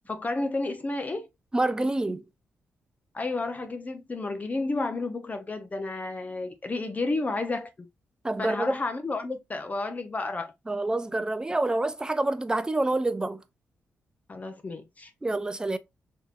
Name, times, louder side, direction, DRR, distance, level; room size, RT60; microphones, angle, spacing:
voice 1, 0.1-1.3 3.1-7.9 8.4-10.5 14.3-15.1, left 2 dB, 30° left, 0.5 m, -31 dB
voice 2, 1.5-2.2 8.2-8.8 10.7-13.4 15.2-15.8, right 2 dB, 15° right, 0.4 m, -27 dB
3.4 x 2.8 x 2.4 m
cardioid pair, 60°, 5 cm